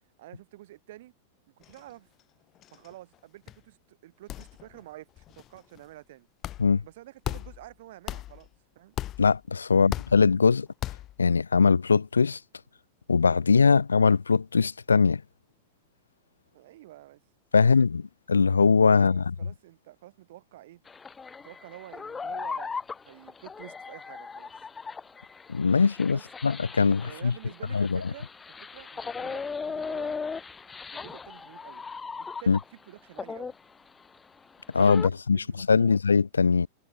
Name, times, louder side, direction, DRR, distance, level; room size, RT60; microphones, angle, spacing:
voice 1, 0.2-1.1 1.6-2.1 2.7-6.3 6.8-8.5 8.8-9.0 9.7-10.0 16.5-17.2 17.6-17.9 19.0-20.8 21.4-22.7 23.1-24.5 26.0-26.3 27.0-28.3 28.6-30.2 30.9-31.8 32.2-33.5 34.9-36.0, right 15 dB, 55° right, 7.2 m, -49 dB
sound 1, 1.6-1.9 2.2-2.3 2.6-3.2 3.5-3.6 4.3-4.8 5.2-5.8 6.4-6.8 7.2-7.7 8.1-8.5 9.0-9.5 9.9-10.4 10.8-11.2, left 13 dB, 35° left, 1.8 m, -37 dB
voice 2, 9.2-10.7 11.2-12.4 13.1-15.2 17.5-18.0 18.3-19.3 25.5-27.3 27.7-28.0 32.5-32.6 34.7-36.7, left 5 dB, 75° left, 0.6 m, -21 dB
sound 2, 20.9-32.8 33.2-35.1, left 5 dB, 15° left, 0.9 m, -38 dB
figure-of-eight pair, 90°, 0 cm